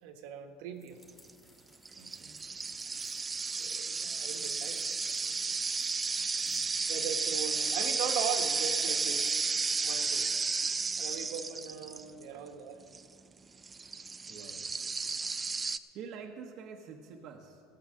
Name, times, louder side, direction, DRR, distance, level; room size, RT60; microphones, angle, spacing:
voice 1, 0.0-1.0 3.1-4.8 5.6-5.8 6.1-6.4 6.9-10.3 10.9-12.8, right 7 dB, 65° right, 5 dB, 1.3 m, -40 dB
sound 1, 0.7-6.8, left 2 dB, 10° left, 1.8 m, -63 dB
sound 2, 1.1-1.3 1.9-12.2 13.0-13.1 13.6-15.8, right 4 dB, 15° right, 0.3 m, -33 dB
voice 2, 2.0-2.5 6.5-6.9 12.3-12.5 14.3-14.7 15.9-17.6, right 6 dB, 45° right, 1 dB, 1.0 m, -47 dB
15.0 x 8.8 x 6.5 m, 2.3 s
cardioid pair, 155°, 0 cm